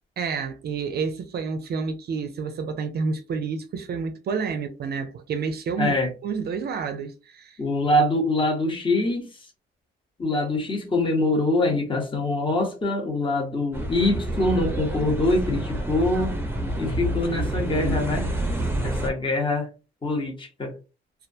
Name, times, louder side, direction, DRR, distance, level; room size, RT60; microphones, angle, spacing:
voice 1, 0.2-6.0 6.2-7.6, right 5 dB, 55° right, 0.4 m, -29 dB
voice 2, 5.8-6.1 7.6-9.3 10.2-16.4 16.8-18.3 18.8-19.7 20.0-20.7, left 2 dB, 25° left, 1.0 m, -24 dB
sound 1, 13.7-19.1, right 1 dB, 10° right, 0.6 m, -28 dB
2.3 x 2.1 x 2.6 m
cardioid pair, 90°, 20 cm